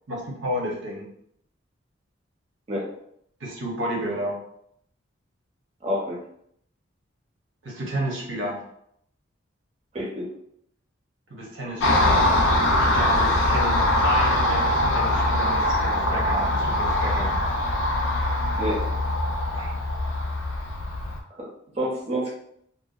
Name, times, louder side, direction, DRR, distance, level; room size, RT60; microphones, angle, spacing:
voice 1, 0.1-1.1 3.4-4.4 7.6-8.6 11.3-12.3 12.8-17.4 19.5-19.7, right 1 dB, 80° right, -2 dB, 0.8 m, -31 dB
voice 2, 5.8-6.2 9.9-10.3 18.6-19.0 21.4-21.5 21.7-22.3, equal, 30° right, -4 dB, 0.5 m, -28 dB
Car passing by, 11.8-21.2, left 1 dB, 85° left, 0.4 m, -22 dB
2.6 x 2.1 x 2.3 m, 0.71 s
head